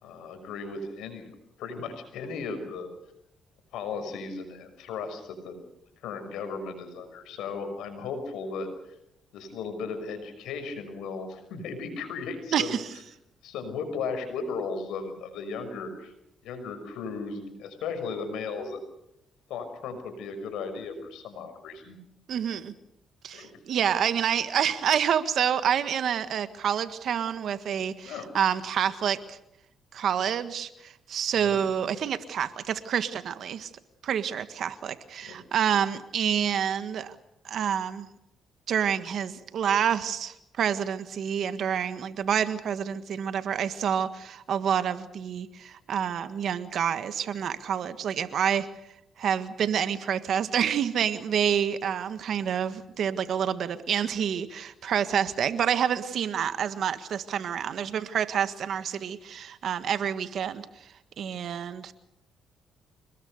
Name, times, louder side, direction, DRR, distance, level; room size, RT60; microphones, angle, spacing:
voice 1, 0.0-1.3 1.6-2.9 3.7-5.6 6.0-9.0 9.3-12.8 13.4-16.1 16.4-18.8 19.5-22.0 23.3-23.5 28.0-28.3 31.3-31.6 35.3-35.4, left 4 dB, 85° left, 8 dB, 6.0 m, -36 dB
voice 2, 12.5-12.9 22.3-22.7 23.2-29.4 29.9-33.7 34.0-37.1 37.4-38.1 38.7-48.7 49.2-60.6 61.2-61.9, right 8 dB, 65° right, 11 dB, 1.6 m, -28 dB
26.5 x 20.5 x 6.7 m, 0.81 s
cardioid pair, 90°, 0 cm